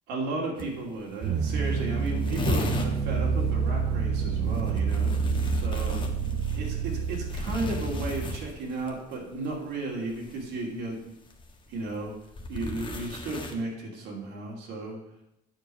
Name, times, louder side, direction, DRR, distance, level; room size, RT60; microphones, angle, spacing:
voice 1, 0.1-5.1 5.5-6.1 6.5-11.2 11.7-12.1 12.5-15.0, right 2 dB, 85° right, -2 dB, 2.7 m, -34 dB
sound 1, 0.6-0.7 1.0-1.1 1.4-1.5 1.6-3.0 4.5-8.9 10.1-10.5 11.3-13.5, left 2 dB, 30° left, 1.3 m, -34 dB
sound 2, 1.2-8.4, right 5 dB, 65° right, 0.8 m, -28 dB
9.0 x 4.7 x 7.6 m, 0.83 s
cardioid pair, 110°, 17 cm